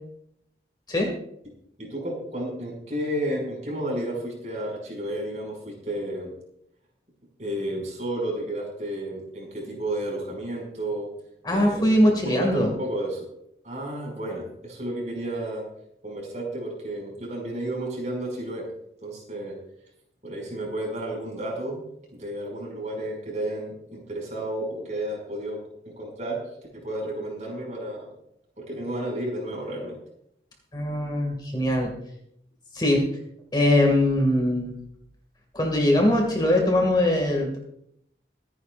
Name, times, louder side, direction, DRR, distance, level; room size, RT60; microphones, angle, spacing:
voice 1, 1.8-6.3 7.4-11.1 11.4-11.9 12.2-13.3 13.6-15.7 16.0-18.7 19.0-19.6 20.2-21.8 22.2-25.6 25.9-26.4 26.7-28.1 28.6-30.0, right 1 dB, 40° right, -1 dB, 6.0 m, -32 dB
voice 2, 11.4-12.7 30.7-31.9 32.7-33.0 33.5-34.8 35.5-37.6, left 1 dB, 25° left, 1 dB, 2.2 m, -21 dB
25.0 x 9.9 x 2.5 m, 0.73 s
head